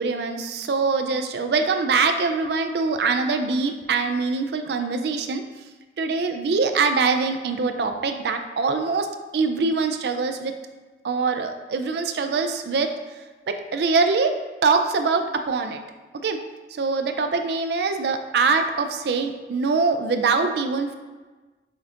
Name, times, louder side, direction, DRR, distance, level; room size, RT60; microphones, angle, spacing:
voice 1, 0.0-5.4 6.0-9.1 9.3-10.5 11.0-12.9 13.5-14.3 14.6-15.8 16.2-16.4 16.8-20.9, right 4 dB, 65° right, 7 dB, 0.3 m, -23 dB
6.3 x 2.7 x 2.5 m, 1.3 s
head